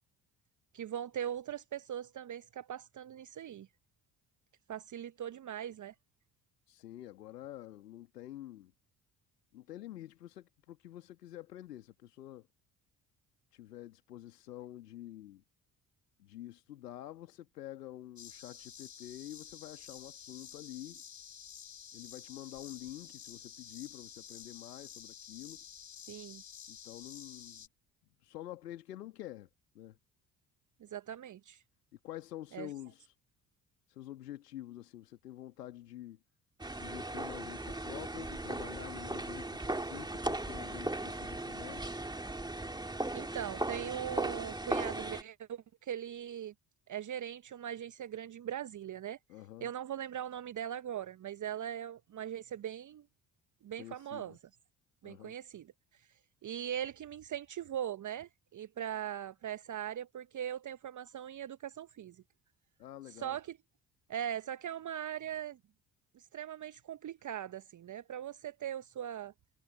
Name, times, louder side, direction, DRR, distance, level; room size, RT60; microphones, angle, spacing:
voice 1, 0.7-3.7 4.7-5.9 26.1-26.4 30.8-31.6 32.5-32.7 43.1-46.5 46.9-49.2 49.6-53.1 53.6-54.4 55.0-56.1 56.4-62.2 63.1-63.6 64.1-65.6 66.1-69.3, right 10 dB, 40° right, 1.2 m, -40 dB
voice 2, 6.7-8.7 9.5-12.5 13.5-15.4 16.2-21.0 21.9-25.6 26.7-27.7 28.2-29.5 29.7-30.0 32.0-33.2 33.9-36.2 36.8-42.0 49.3-49.7 53.8-54.4 55.0-55.4 62.8-63.4, left 13 dB, 75° left, 2.3 m, -48 dB
sound 1, 18.2-27.7, left 8 dB, 35° left, 3.5 m, -51 dB
sound 2, 36.6-45.2, right 2 dB, 10° right, 2.3 m, -37 dB
figure-of-eight pair, 50°, 48 cm